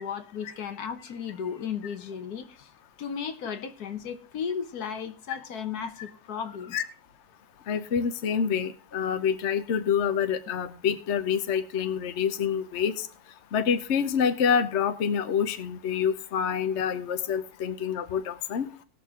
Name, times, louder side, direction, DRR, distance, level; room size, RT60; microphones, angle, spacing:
voice 1, 0.0-2.7 3.0-6.8, left 7 dB, 75° left, 1.5 m, -35 dB
voice 2, 7.7-13.1 13.5-18.7, left 7 dB, 55° left, 1.0 m, -27 dB
19.5 x 6.5 x 3.6 m
omnidirectional pair, 1.7 m